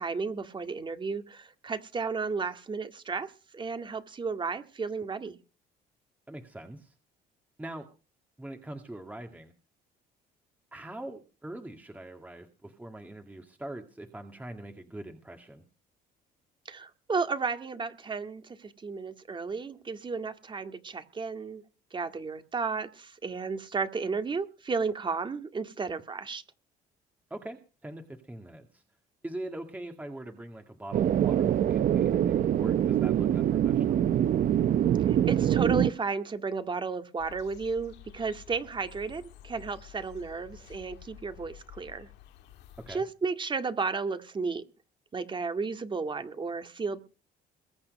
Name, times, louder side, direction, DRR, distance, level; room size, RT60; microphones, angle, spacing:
voice 1, 0.0-5.3 16.7-21.6 21.9-26.4 35.0-42.1 42.9-44.6 45.1-47.0, right 4 dB, 30° right, 8 dB, 2.0 m, -33 dB
voice 2, 6.3-6.9 7.6-7.9 8.4-9.5 10.7-15.6 27.3-28.8 29.2-34.0 42.9-43.0, right 1 dB, 10° right, 5 dB, 2.0 m, -42 dB
sound 1, 30.9-35.9, right 10 dB, 55° right, 0.8 m, -24 dB
January Dawn Chorus, 37.2-43.0, left 12 dB, 85° left, 2.3 m, -51 dB
22.0 x 8.7 x 5.3 m, 0.34 s
cardioid pair, 110°, 17 cm